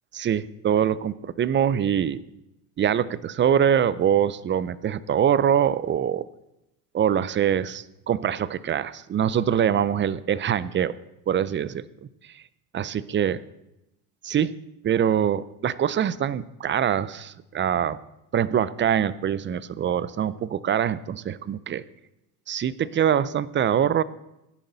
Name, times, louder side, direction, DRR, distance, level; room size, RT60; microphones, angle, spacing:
voice 1, 0.1-2.2 2.8-6.3 6.9-10.9 11.3-11.8 12.7-13.4 14.2-14.5 14.8-18.0 18.3-21.8 22.5-24.0, right 9 dB, 25° right, 18 dB, 0.5 m, -24 dB
16.0 x 10.5 x 4.0 m, 0.89 s
supercardioid pair, 95°, 44 cm